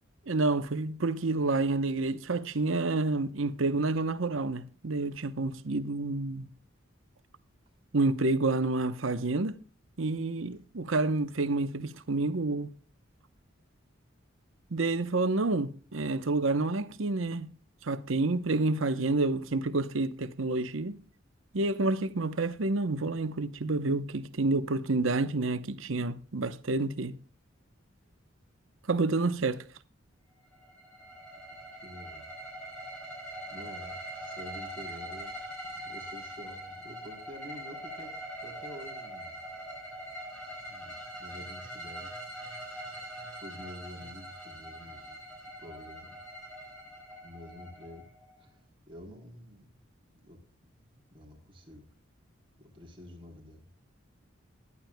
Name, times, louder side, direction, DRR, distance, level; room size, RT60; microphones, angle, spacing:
voice 1, 0.3-6.5 7.9-9.6 10.0-12.7 14.7-17.5 17.8-21.0 21.5-27.1 28.9-29.6, right 3 dB, 75° right, 0.9 m, -29 dB
sound 1, 30.5-48.4, right 1 dB, 5° left, 5.7 m, -43 dB
voice 2, 31.7-32.3 33.5-38.1 38.4-39.4 40.6-42.2 42.7-43.1 43.4-45.2 45.6-46.3 47.1-48.1 48.4-49.8 50.2-50.4 50.7-51.9 52.6-53.7, left 1 dB, 25° right, 3.9 m, -49 dB
21.0 x 11.0 x 2.2 m
head